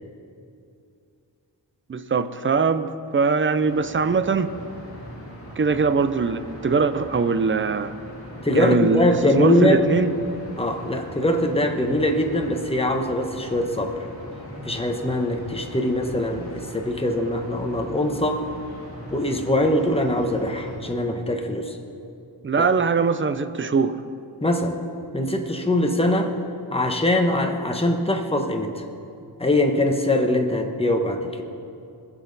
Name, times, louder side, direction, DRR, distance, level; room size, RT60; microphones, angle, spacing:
voice 1, 1.9-4.5 5.6-7.9 8.5-10.1 22.4-24.0, right 5 dB, 30° right, 12 dB, 0.5 m, -22 dB
sound 1, 3.6-20.8, equal, 30° left, 2.9 m, -40 dB
voice 2, 8.4-9.9 10.6-13.9 14.6-18.4 19.1-21.8 22.6-22.7 24.4-24.8 25.1-26.3 26.7-28.8 29.4-31.4, left 1 dB, 15° left, 4 dB, 1.0 m, -22 dB
20.5 x 7.4 x 4.0 m, 2.6 s
wide cardioid pair, 100°, 44 cm